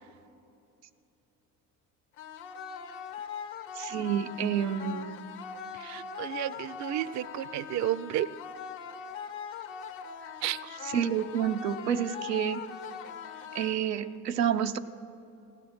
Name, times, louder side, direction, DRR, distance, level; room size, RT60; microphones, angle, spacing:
sound 1, 2.2-14.2, left 7 dB, 60° left, 1.0 m, -41 dB
voice 1, 3.8-5.2 10.9-12.6 13.5-14.8, right 9 dB, 90° right, 7 dB, 0.6 m, -29 dB
voice 2, 5.7-8.3 10.4-10.6, right 13 dB, 40° right, 19 dB, 0.4 m, -32 dB
16.0 x 9.9 x 6.2 m, 2.7 s
hypercardioid pair, 55°, 47 cm